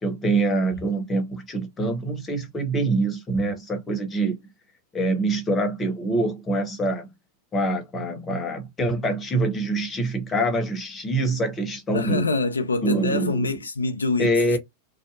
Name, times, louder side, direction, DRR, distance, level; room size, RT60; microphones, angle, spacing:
voice 1, 0.0-4.3 4.9-7.1 7.5-12.2 12.8-13.5 14.2-14.6, right 2 dB, 20° left, 0.9 m, -25 dB
voice 2, 11.9-14.6, left 3 dB, 85° left, 0.3 m, -25 dB
2.6 x 2.0 x 2.4 m
figure-of-eight pair, 90°, 0 cm